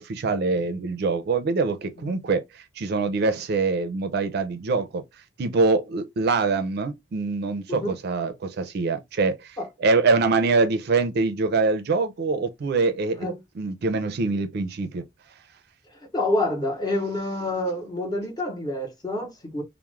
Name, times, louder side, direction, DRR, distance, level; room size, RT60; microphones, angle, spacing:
voice 1, 0.0-5.0 5.4-13.3 13.6-15.0, right 3 dB, 55° right, 0.4 m, -24 dB
voice 2, 15.9-19.6, left 1 dB, 20° left, 0.7 m, -28 dB
2.3 x 2.0 x 2.9 m
head